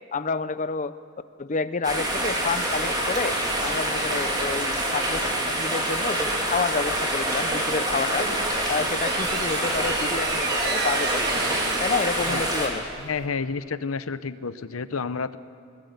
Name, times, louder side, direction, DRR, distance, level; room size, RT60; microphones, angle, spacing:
voice 1, 0.1-0.9 1.4-5.2 5.5-8.3 8.7-11.5 11.8-12.8, left 4 dB, 35° left, 13 dB, 0.7 m, -29 dB
sound 1, 1.8-12.7, right 1 dB, 20° right, 3.6 m, -26 dB
sound 2, 8.1-13.3, right 5 dB, 50° right, 1.6 m, -33 dB
voice 2, 13.0-15.4, left 5 dB, 80° left, 14 dB, 0.8 m, -30 dB
21.0 x 20.0 x 8.0 m, 2.4 s
head